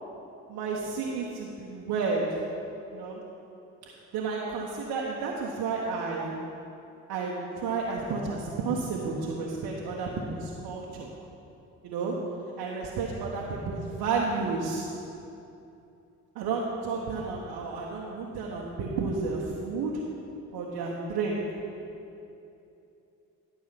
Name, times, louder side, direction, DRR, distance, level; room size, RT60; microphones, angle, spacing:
voice 1, 0.5-2.2 2.9-3.2 4.1-6.3 7.1-11.1 11.8-12.1 12.6-14.9 16.3-19.9 20.5-21.4, right 4 dB, 60° right, -3 dB, 1.3 m, -31 dB
12.5 x 6.3 x 5.8 m, 2.8 s
figure-of-eight pair, 50°, 42 cm